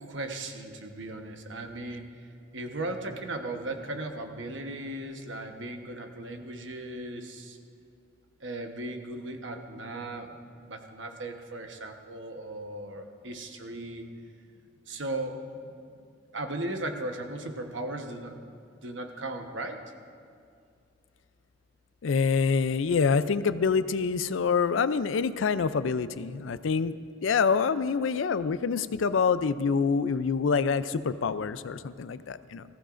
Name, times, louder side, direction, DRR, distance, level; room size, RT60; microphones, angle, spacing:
voice 1, 0.0-2.1 2.5-7.6 8.4-10.3 10.6-14.1 14.9-15.7 16.3-19.8, right 2 dB, 75° right, 4 dB, 1.1 m, -37 dB
voice 2, 22.0-26.9 27.2-32.6, left 5 dB, 85° left, 14 dB, 0.4 m, -26 dB
20.0 x 15.0 x 2.6 m, 2.4 s
head